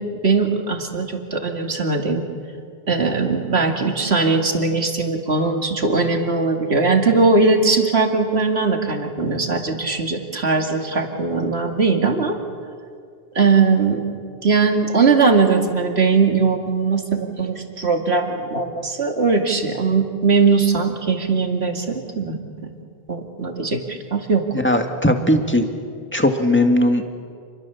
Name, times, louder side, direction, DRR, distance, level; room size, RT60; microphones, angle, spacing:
voice 1, 0.0-2.2 2.9-12.4 13.4-14.0 14.4-22.4 23.1-24.4, right 4 dB, 75° right, 4 dB, 2.6 m, -20 dB
voice 2, 24.5-25.7 26.1-27.0, left 1 dB, 10° left, 5 dB, 1.9 m, -18 dB
29.0 x 22.0 x 7.2 m, 2.2 s
omnidirectional pair, 1.1 m